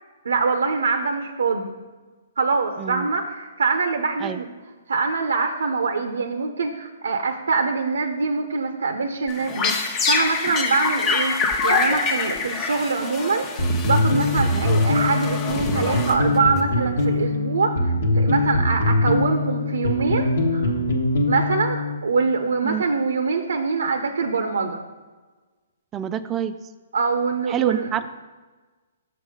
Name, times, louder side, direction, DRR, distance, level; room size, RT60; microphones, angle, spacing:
voice 1, 0.2-1.7 2.4-4.5 4.9-11.4 11.6-20.7 21.3-24.8 26.9-27.9, right 4 dB, 85° right, 7 dB, 0.6 m, -24 dB
voice 2, 2.8-3.1 4.2-4.4 14.5-14.6 22.6-22.8 25.9-26.6 27.5-28.2, right 9 dB, 20° right, 10 dB, 0.3 m, -27 dB
sound 1, 9.3-16.6, left 4 dB, 25° left, 0.8 m, -26 dB
sound 2, 13.6-22.0, left 2 dB, 70° left, 1.2 m, -22 dB
6.4 x 5.9 x 4.9 m, 1.3 s
hypercardioid pair, 145°, 0 cm